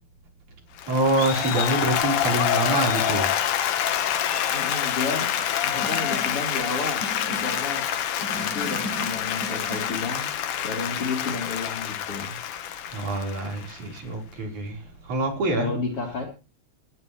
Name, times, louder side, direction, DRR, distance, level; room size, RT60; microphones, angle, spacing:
Applause, 0.8-14.0, left 10 dB, 75° left, 2.8 m, -27 dB
voice 1, 0.9-3.3 12.9-14.8 15.1-15.7, right 2 dB, 65° right, 1 dB, 5.6 m, -25 dB
voice 2, 4.5-7.8 8.3-10.3 10.6-12.4 15.6-16.3, left 3 dB, 45° left, 0 dB, 4.2 m, -32 dB
Snare drum, 5.8-6.5 7.0-7.7 8.2-10.1, equal, 50° right, 9.1 m, -36 dB
19.0 x 18.0 x 3.2 m, 0.32 s
omnidirectional pair, 3.7 m